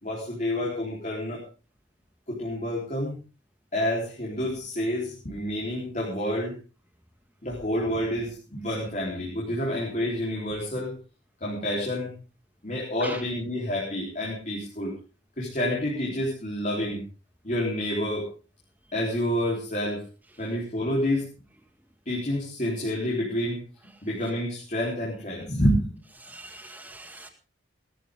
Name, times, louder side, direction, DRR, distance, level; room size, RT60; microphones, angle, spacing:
voice 1, 0.0-1.4 2.3-3.2 3.7-6.6 7.4-11.0 11.4-12.2 12.6-14.9 15.4-17.0 17.4-18.3 18.9-20.0 20.4-21.3 22.1-23.6 24.0-25.9, left 1 dB, 40° left, 3.9 m, -28 dB
voice 2, 26.2-27.3, right 2 dB, 10° right, 2.0 m, -41 dB
18.5 x 14.0 x 3.8 m
head